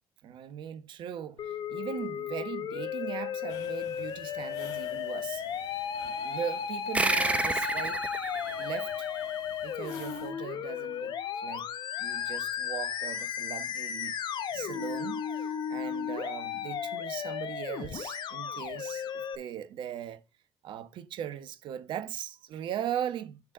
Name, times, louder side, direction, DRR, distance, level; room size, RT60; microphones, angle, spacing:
voice 1, 0.2-5.4 6.0-8.1 8.6-9.1 9.6-11.7 12.0-14.1 14.5-20.2 20.6-23.5, right 9 dB, 65° right, 1.1 m, -39 dB
Musical instrument, 1.4-19.4, left 8 dB, 60° left, 1.0 m, -35 dB
sound 1, 3.5-10.3, left 6 dB, 80° left, 1.6 m, -52 dB
sound 2, 6.9-9.9, right 2 dB, 15° right, 0.9 m, -31 dB
6.5 x 4.2 x 5.5 m
hypercardioid pair, 60°, 9 cm